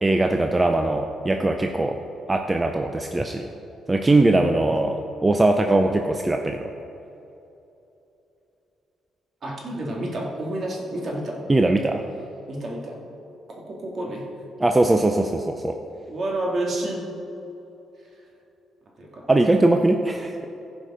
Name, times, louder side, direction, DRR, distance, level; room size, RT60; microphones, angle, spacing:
voice 1, 0.0-2.0 2.3-3.5 3.9-6.6 11.5-12.0 14.6-15.8 19.3-20.4, right 2 dB, 20° right, 4 dB, 0.5 m, -20 dB
voice 2, 4.2-4.6 9.4-11.4 12.5-13.0 13.5-14.3 16.1-17.1 19.0-19.2 19.5-19.6, right 1 dB, 50° right, -2 dB, 2.3 m, -30 dB
15.5 x 5.2 x 5.0 m, 2.9 s
cardioid pair, 90°, 0 cm